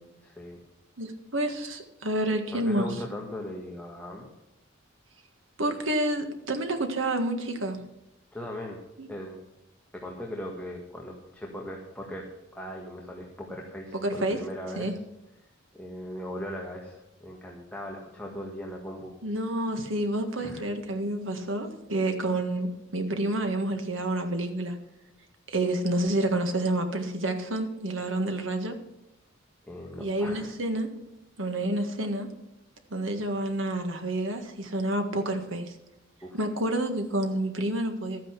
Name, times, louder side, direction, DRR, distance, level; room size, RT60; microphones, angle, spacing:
voice 1, 0.2-0.6 2.5-4.3 8.3-8.8 9.1-9.4 9.9-12.3 12.5-15.0 15.7-19.1 20.4-20.6 29.6-30.5 36.2-36.4, equal, 10° left, -1 dB, 1.6 m, -39 dB
voice 2, 1.0-2.9 5.6-7.8 9.0-9.1 14.0-14.4 14.7-14.9 19.2-24.8 25.5-28.7 30.0-30.9 31.4-32.3 32.9-35.7 36.3-38.2, right 1 dB, 75° right, 5 dB, 1.7 m, -29 dB
12.5 x 9.4 x 5.9 m, 0.91 s
head